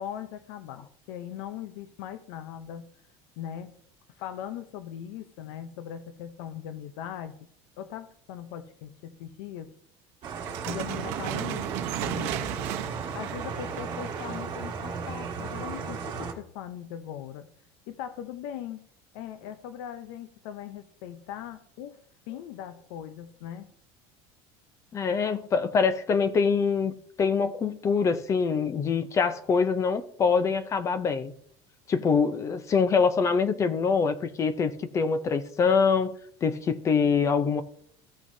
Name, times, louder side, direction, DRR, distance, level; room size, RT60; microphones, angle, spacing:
voice 1, 0.0-2.9 3.4-3.7 4.2-7.3 7.8-9.7 10.7-12.6 13.1-17.5 17.9-18.8 19.1-22.0 22.3-23.7, left 10 dB, 80° left, 0.6 m, -40 dB
sound 1, 10.2-16.3, right 5 dB, 35° right, 1.6 m, -35 dB
sound 2, 10.4-14.6, right 12 dB, 70° right, 0.8 m, -35 dB
voice 2, 24.9-31.3 31.9-36.1 36.4-37.6, left 5 dB, 25° left, 0.5 m, -24 dB
15.0 x 6.1 x 2.7 m
cardioid pair, 165°, 13 cm